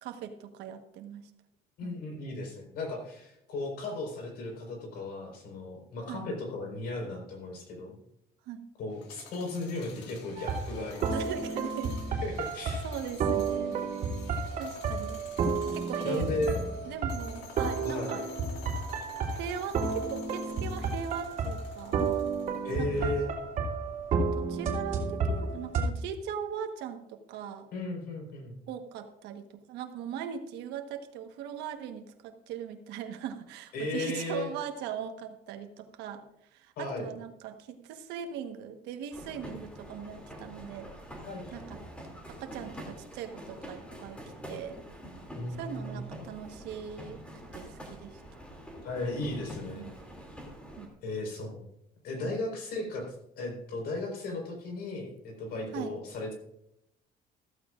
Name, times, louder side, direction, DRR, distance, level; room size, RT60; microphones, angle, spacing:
voice 1, 0.0-1.3 1.8-2.0 6.1-6.3 8.5-8.6 11.1-12.0 12.8-13.8 14.6-15.2 15.7-16.3 16.8-18.2 19.3-22.0 22.8-23.1 24.3-27.7 28.7-36.2 36.5-40.9 41.5-41.8 42.3-44.2 44.5-44.8 45.6-47.2 47.5-48.2 49.7-49.9 50.8-50.9 52.2-52.3 55.7-56.0, right 8 dB, 90° right, 6 dB, 1.3 m, -40 dB
voice 2, 1.8-8.0 8.8-11.3 12.2-12.9 16.0-16.6 17.8-18.2 22.6-23.3 27.7-28.6 33.7-34.5 36.8-37.1 41.2-41.6 45.3-46.0 48.8-49.9 51.0-51.6 52.0-56.3, left 2 dB, 65° left, 2 dB, 4.6 m, -35 dB
sound 1, 8.9-23.0, left 5 dB, 80° left, 2.1 m, -51 dB
sound 2, 10.4-25.9, right 4 dB, 50° right, 3.0 m, -32 dB
sound 3, 39.1-50.9, equal, 5° left, 2.7 m, -46 dB
14.5 x 14.0 x 2.5 m, 0.79 s
cardioid pair, 150°, 17 cm